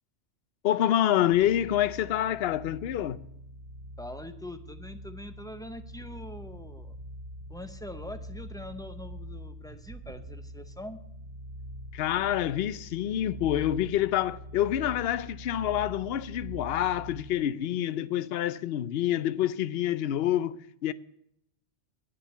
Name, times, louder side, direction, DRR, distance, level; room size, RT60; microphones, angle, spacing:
voice 1, 0.6-3.2 11.9-20.9, left 12 dB, 65° left, 0.8 m, -27 dB
sound 1, 1.3-17.5, equal, 60° right, 1.1 m, -44 dB
voice 2, 4.0-7.0 7.5-11.0, left 1 dB, 5° left, 0.6 m, -43 dB
10.0 x 7.3 x 8.0 m
omnidirectional pair, 1.2 m